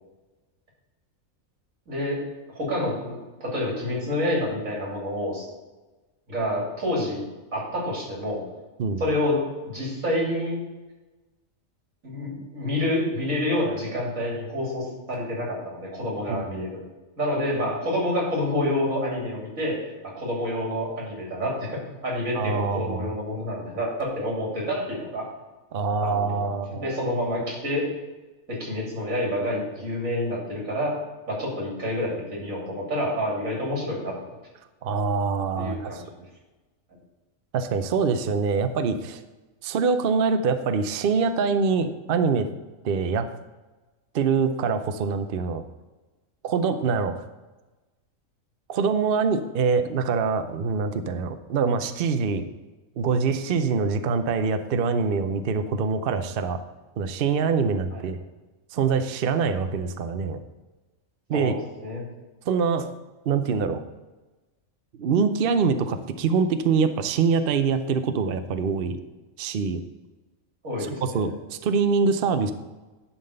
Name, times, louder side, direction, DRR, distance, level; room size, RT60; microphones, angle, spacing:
voice 1, 1.9-5.5 6.3-7.2 7.5-8.4 9.0-10.6 12.0-16.8 17.2-25.3 26.0-27.9 28.5-30.9 31.3-34.2 35.6-36.0 57.9-58.0 61.3-62.0 70.6-71.3, left 1 dB, 80° right, -3 dB, 3.4 m, -28 dB
voice 2, 16.3-16.6 22.3-23.1 25.7-27.0 34.8-36.0 37.5-39.2 39.6-42.5 42.8-43.3 44.1-45.6 46.4-47.2 48.7-52.5 53.0-56.6 57.0-58.2 58.7-60.4 61.3-61.6 62.5-62.9 63.3-63.8 65.0-69.0 69.4-69.8 71.0-72.5, right 5 dB, 55° right, 9 dB, 0.6 m, -24 dB
11.0 x 3.8 x 6.5 m, 1.2 s
omnidirectional pair, 1.4 m